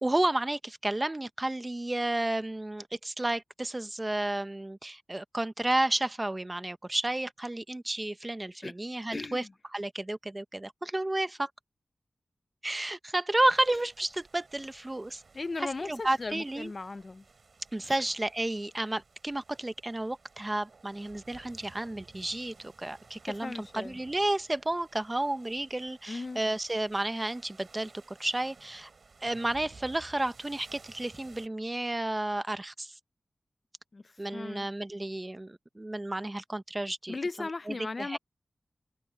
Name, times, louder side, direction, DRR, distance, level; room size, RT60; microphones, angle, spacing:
voice 1, 0.0-9.4 9.7-11.5 12.6-15.2 15.6-16.7 17.7-28.9 29.2-32.9 34.2-38.2, right 1 dB, 25° right, 0.9 m, -32 dB
voice 2, 9.1-9.5 15.3-17.2 17.8-18.0 23.3-24.0 26.1-26.4 33.9-34.7 37.1-38.2, left 3 dB, 50° left, 0.7 m, -37 dB
sound 1, 13.5-31.5, right 4 dB, 65° right, 7.4 m, -57 dB
wide cardioid pair, 70°, 0 cm